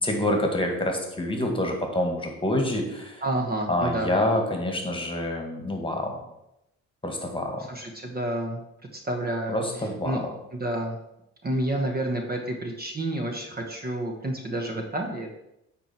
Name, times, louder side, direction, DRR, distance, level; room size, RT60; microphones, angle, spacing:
voice 1, 0.0-3.2 3.7-6.2 7.0-7.7 9.5-10.3, left 1 dB, 15° left, 3 dB, 1.7 m, -27 dB
voice 2, 3.2-4.1 7.7-8.6 8.9-9.6 10.0-10.2 10.5-11.0 11.4-15.3, right 1 dB, 30° right, 3 dB, 1.1 m, -29 dB
8.9 x 4.5 x 4.4 m, 0.85 s
cardioid pair, 90°, 30 cm